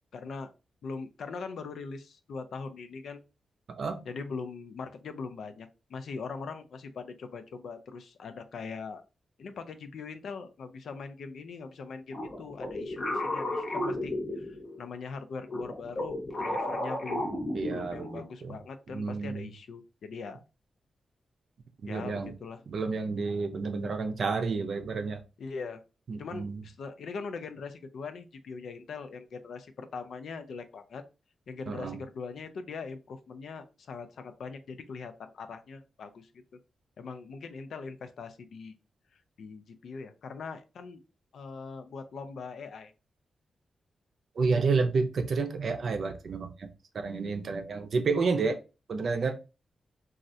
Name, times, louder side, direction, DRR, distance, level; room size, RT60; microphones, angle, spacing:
voice 1, 0.1-0.5 0.8-3.2 4.0-9.0 9.4-17.4 17.7-20.4 21.9-22.6 25.4-25.8 26.2-31.0 31.5-36.3 37.0-38.7 39.4-41.0 41.3-42.9, left 4 dB, 70° left, 0.4 m, -41 dB
sound 1, 12.1-14.9 15.5-18.2, left 1 dB, 35° left, 0.7 m, -33 dB
voice 2, 17.5-18.5 18.9-19.5 21.8-22.3 22.7-25.2 26.1-26.6 31.7-32.0 44.4-46.7 46.9-48.6 48.9-49.3, right 4 dB, 55° right, 0.5 m, -30 dB
3.1 x 2.4 x 2.6 m
wide cardioid pair, 155°, 0 cm